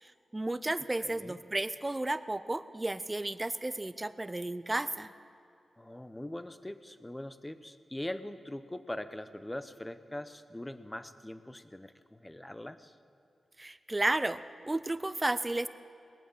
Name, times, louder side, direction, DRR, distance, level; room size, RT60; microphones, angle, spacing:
voice 1, 0.0-5.1 13.6-15.7, right 2 dB, 20° right, 14 dB, 0.5 m, -33 dB
voice 2, 1.0-1.4 5.8-13.0, left 1 dB, 15° left, 12 dB, 0.7 m, -42 dB
19.5 x 9.0 x 7.1 m, 2.5 s
cardioid pair, 80°, 0 cm